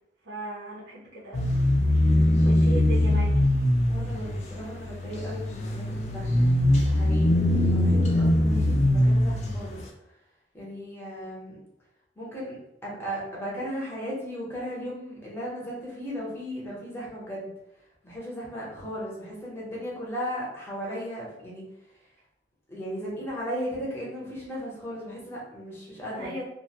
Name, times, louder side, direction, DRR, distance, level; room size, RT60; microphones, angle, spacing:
voice 1, 0.2-1.5 2.4-3.3 26.1-26.4, right 2 dB, 80° right, -9 dB, 0.7 m, -36 dB
sound 1, 1.3-9.7, left 1 dB, 35° left, 0.3 m, -22 dB
voice 2, 3.9-9.8 10.5-11.6 12.2-17.5 18.0-21.6 22.7-26.3, equal, 15° left, -5 dB, 0.7 m, -36 dB
2.3 x 2.0 x 2.8 m, 0.83 s
head